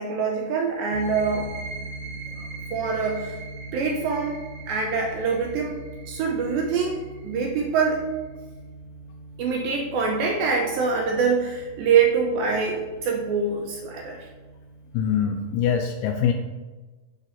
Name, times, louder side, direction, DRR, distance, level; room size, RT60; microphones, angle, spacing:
voice 1, 0.0-1.6 2.7-3.4 3.7-8.0 9.4-14.3, right 5 dB, 85° right, 0 dB, 2.2 m, -25 dB
sound 1, 0.8-8.3, right 4 dB, 50° right, 1.1 m, -43 dB
sound 2, 0.9-15.3, right 2 dB, 25° right, 0.7 m, -42 dB
voice 2, 14.9-16.3, left 8 dB, 85° left, 4 dB, 2.2 m, -23 dB
7.4 x 3.5 x 5.6 m, 1.3 s
omnidirectional pair, 4.8 m